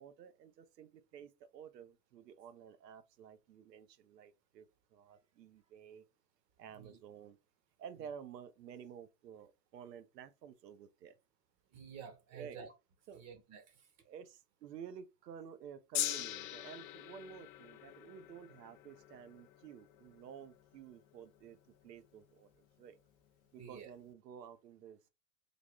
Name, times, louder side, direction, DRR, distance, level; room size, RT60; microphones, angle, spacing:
voice 1, 0.0-4.7 4.9-6.0 6.6-7.4 7.8-11.2 12.3-12.6 13.1-13.2 14.0-21.6 21.8-22.5 22.8-23.0 23.5-25.1, right 8 dB, 80° right, 0.7 m, -52 dB
voice 2, 11.7-12.7 13.2-13.9 23.6-23.9, right 6 dB, 35° right, 0.8 m, -51 dB
Gong, 15.9-22.3 23.1-23.2, left 12 dB, 60° left, 0.6 m, -43 dB
3.4 x 2.2 x 3.7 m
hypercardioid pair, 105°, 48 cm